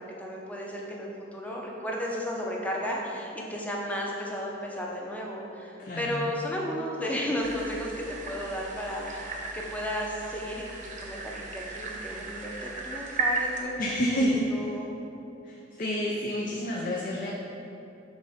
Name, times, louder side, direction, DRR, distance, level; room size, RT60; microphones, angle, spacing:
voice 1, 0.2-14.9, equal, 10° left, -2 dB, 0.7 m, -34 dB
voice 2, 5.8-6.2 13.8-14.7 15.4-17.3, equal, 45° left, -3 dB, 0.5 m, -29 dB
sound 1, 7.4-13.6, right 3 dB, 40° right, 0.8 m, -35 dB
6.2 x 3.8 x 5.0 m, 2.8 s
head